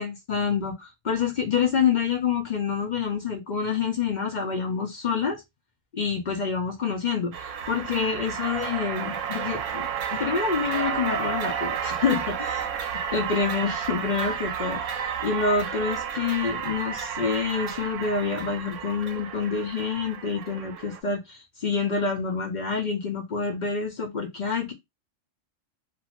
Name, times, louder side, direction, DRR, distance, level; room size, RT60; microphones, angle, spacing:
voice 1, 0.0-5.4 5.9-12.7 13.1-24.7, left 5 dB, 55° left, 0.5 m, -27 dB
sound 1, 7.3-21.0, right 8 dB, 75° right, 0.9 m, -32 dB
2.5 x 2.4 x 2.9 m
omnidirectional pair, 1.3 m